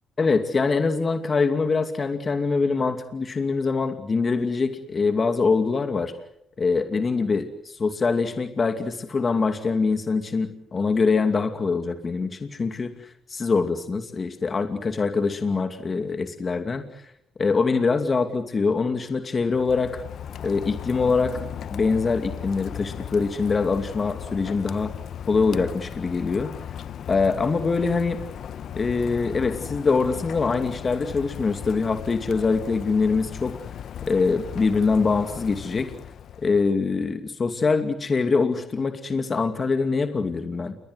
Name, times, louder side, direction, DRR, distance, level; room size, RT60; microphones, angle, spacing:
voice 1, 0.2-6.1 6.6-17.1 17.4-20.0 20.4-21.4 21.7-24.9 25.3-26.5 27.1-28.2 28.8-33.6 34.1-35.9 36.4-40.8, left 4 dB, 35° left, 7 dB, 2.5 m, -24 dB
Rain, 19.4-36.7, left 9 dB, 65° left, 1.1 m, -37 dB
29.5 x 23.0 x 8.0 m, 0.76 s
cardioid pair, 90°, 0 cm